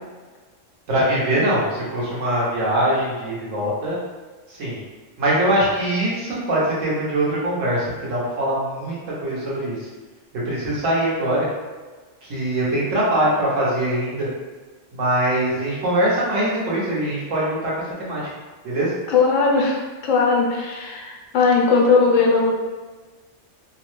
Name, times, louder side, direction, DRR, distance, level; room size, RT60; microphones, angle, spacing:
voice 1, 0.9-4.0 4.5-4.8 5.2-7.8 8.1-9.8 10.4-11.5 12.2-14.3 14.9-17.7 18.0-18.2 18.6-18.9, right 1 dB, 75° right, -6 dB, 1.3 m, -22 dB
voice 2, 19.1-22.5, left 4 dB, 80° left, -1 dB, 1.0 m, -18 dB
3.1 x 2.1 x 3.0 m, 1.3 s
omnidirectional pair, 1.3 m